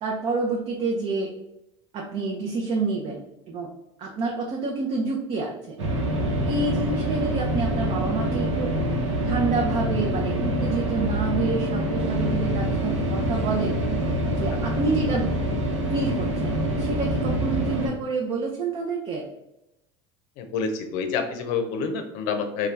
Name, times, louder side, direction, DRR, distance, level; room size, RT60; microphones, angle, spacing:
voice 1, 0.0-1.3 1.9-3.2 3.5-3.7 4.0-5.8 6.5-8.8 9.2-13.7 14.3-15.3 15.9-19.2, right 3 dB, 40° right, 0 dB, 0.6 m, -28 dB
sound 1, 5.8-17.9, right 1 dB, 90° right, 0.8 m, -25 dB
voice 2, 20.4-22.7, left 5 dB, 65° left, 6 dB, 0.6 m, -28 dB
2.8 x 2.3 x 3.3 m, 0.89 s
hypercardioid pair, 90°, 15 cm